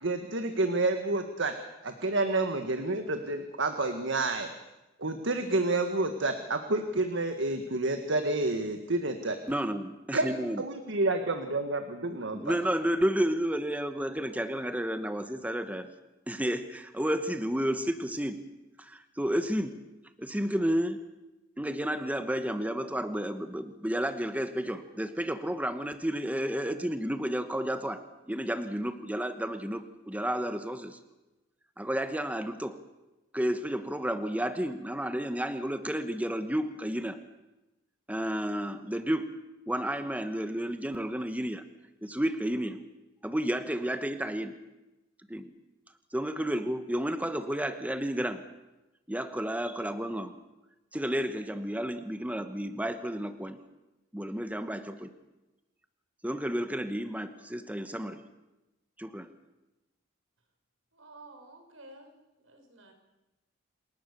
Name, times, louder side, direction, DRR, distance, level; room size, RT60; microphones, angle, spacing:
voice 1, 0.0-1.5 1.8-4.5 5.0-9.4 10.1-10.3 10.6-12.6, right 2 dB, 65° right, 7 dB, 1.7 m, -29 dB
voice 2, 9.5-10.6 12.3-15.9 16.3-18.4 18.8-19.7 20.2-21.0 21.6-31.0 31.8-32.8 33.3-37.2 38.1-39.3 39.7-41.6 42.0-42.8 43.2-44.5 45.3-45.5 46.1-48.4 49.1-50.3 50.9-53.6 54.1-55.1 56.2-58.2 59.0-59.3, equal, 10° right, 9 dB, 1.1 m, -31 dB
voice 3, 60.9-62.9, right 2 dB, 85° right, 4 dB, 5.8 m, -52 dB
27.5 x 19.0 x 6.8 m, 1.0 s
head